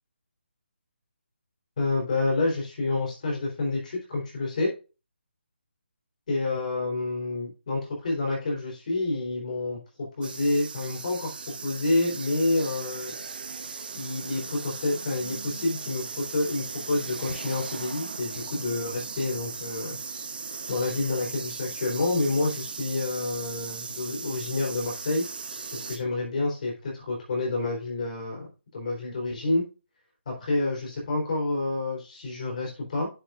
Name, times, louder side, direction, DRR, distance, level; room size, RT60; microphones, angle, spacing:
voice 1, 1.8-4.7 6.3-11.3 11.6-13.1 13.9-20.0 20.7-25.3 25.7-28.5 28.7-29.7 30.3-33.1, left 2 dB, 40° left, -1 dB, 3.8 m, -28 dB
sound 1, 10.2-26.0, right 5 dB, 50° right, 1.2 m, -38 dB
10.0 x 6.8 x 2.5 m, 0.31 s
hypercardioid pair, 165°, 6 cm